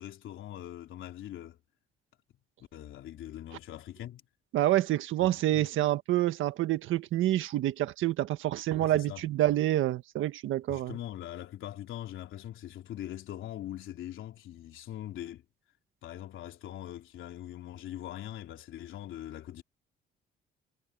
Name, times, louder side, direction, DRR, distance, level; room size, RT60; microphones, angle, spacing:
voice 1, 0.0-1.6 2.7-4.2 5.2-5.7 8.7-9.3 10.7-15.4 16.0-19.6, left 12 dB, 80° left, 3.6 m, -42 dB
voice 2, 4.5-11.0, right 14 dB, 85° right, 1.6 m, -27 dB
cardioid pair, 90°, 20 cm